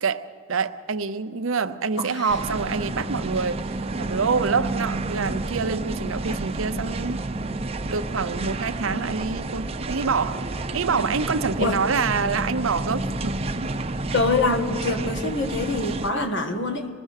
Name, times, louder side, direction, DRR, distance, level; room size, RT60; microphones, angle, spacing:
voice 1, 0.0-7.2 7.9-10.5 10.7-13.7, right 5 dB, 75° right, 12 dB, 0.7 m, -26 dB
voice 2, 2.0-2.3 11.6-11.8 14.1-16.9, left 2 dB, 60° left, 7 dB, 1.7 m, -25 dB
sound 1, 2.3-16.1, right 2 dB, 30° right, 0.7 m, -30 dB
25.0 x 20.5 x 6.6 m, 2.1 s
head